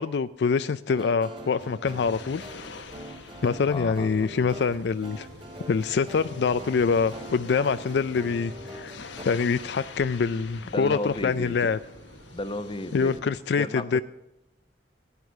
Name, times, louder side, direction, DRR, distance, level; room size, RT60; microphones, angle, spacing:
voice 1, 0.0-2.4 3.4-5.3 5.7-8.9 9.2-11.8 12.9-13.7 13.9-14.0, left 5 dB, 65° left, 13 dB, 0.4 m, -25 dB
sound 1, 0.9-9.2, equal, 30° right, 2.4 m, -43 dB
sound 2, 1.0-13.2, left 5 dB, 90° left, 1.2 m, -46 dB
sound 3, 1.8-13.4, right 1 dB, 65° right, 2.0 m, -50 dB
voice 2, 3.7-4.3 10.6-11.7 12.3-13.3 13.5-14.0, left 1 dB, 30° left, 11 dB, 0.9 m, -33 dB
15.0 x 9.8 x 6.3 m, 0.88 s
head